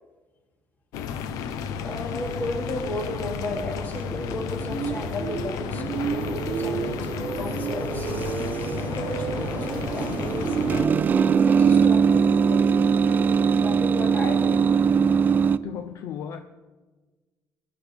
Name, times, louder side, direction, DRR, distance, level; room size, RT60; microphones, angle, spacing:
sound 1, 0.9-10.9, left 7 dB, 90° left, 0.8 m, -32 dB
voice 1, 1.8-8.1 8.8-12.7 13.6-14.7, left 1 dB, 30° left, 2.6 m, -34 dB
sound 2, 3.9-15.6, right 6 dB, 30° right, 0.4 m, -23 dB
voice 2, 15.6-16.4, left 8 dB, 60° left, 0.6 m, -35 dB
18.5 x 12.0 x 3.5 m
cardioid pair, 140°, 6 cm